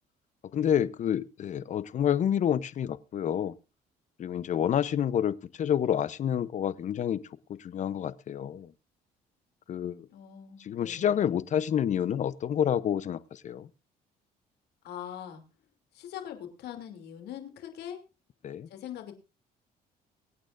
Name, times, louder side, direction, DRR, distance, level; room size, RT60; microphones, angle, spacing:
voice 1, 0.5-3.5 4.2-7.2 7.5-8.7 9.7-10.1 10.6-13.7 18.4-18.7, left 9 dB, 45° left, 0.8 m, -28 dB
voice 2, 10.1-11.2 14.8-15.4 15.9-18.0 18.7-19.1, left 10 dB, 75° left, 2.8 m, -42 dB
24.0 x 8.9 x 2.5 m
cardioid pair, 110°, 17 cm